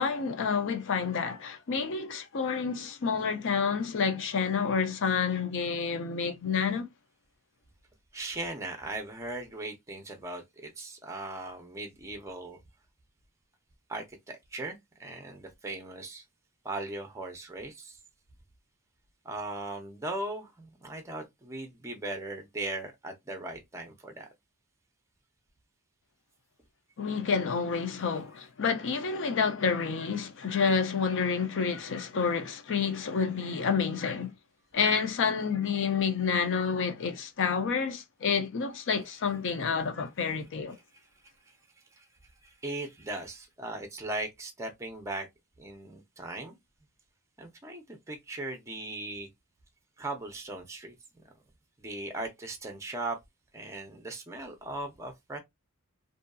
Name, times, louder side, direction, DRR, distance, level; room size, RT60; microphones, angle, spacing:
voice 1, 0.0-6.9 27.0-34.3 34.7-40.8, left 5 dB, 60° left, 0.5 m, -29 dB
voice 2, 8.1-12.6 13.9-16.2 16.6-18.0 19.2-24.3 39.0-39.2 40.2-40.3 40.7-40.8 42.0-42.1 42.4-45.3 45.6-46.6 47.4-49.3 50.0-50.9 51.8-53.2 53.5-55.4, right 2 dB, 15° right, 0.6 m, -38 dB
2.6 x 2.6 x 2.3 m
head